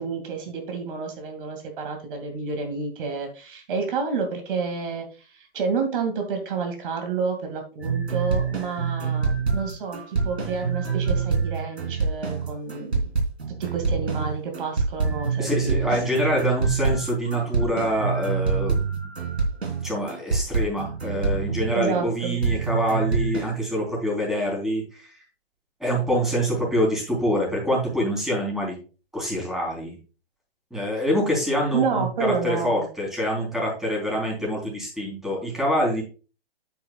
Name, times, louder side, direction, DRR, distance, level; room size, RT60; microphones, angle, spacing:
voice 1, 0.0-13.1 13.5-16.3 21.7-22.4 31.7-32.9, right 5 dB, 55° right, 4 dB, 2.3 m, -29 dB
sound 1, 7.8-22.0 22.4-23.5, right 5 dB, 85° right, 3.5 m, -26 dB
voice 2, 15.4-19.0 19.8-25.1 25.8-28.8 29.1-30.0 30.7-36.0, equal, ahead, -2 dB, 3.6 m, -25 dB
9.1 x 8.9 x 2.3 m, 0.35 s
hypercardioid pair, 130°, 31 cm